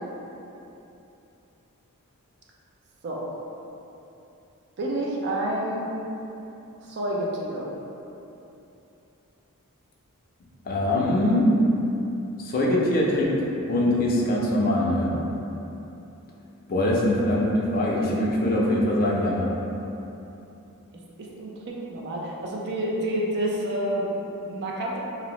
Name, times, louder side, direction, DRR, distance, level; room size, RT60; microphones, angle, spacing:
voice 1, 4.8-5.9 6.9-7.7 21.2-25.0, right 1 dB, 50° right, -3 dB, 0.4 m, -29 dB
voice 2, 10.7-11.5 12.4-15.1 16.7-19.5, left 1 dB, 40° left, -3 dB, 0.4 m, -23 dB
2.6 x 2.0 x 2.9 m, 2.9 s
head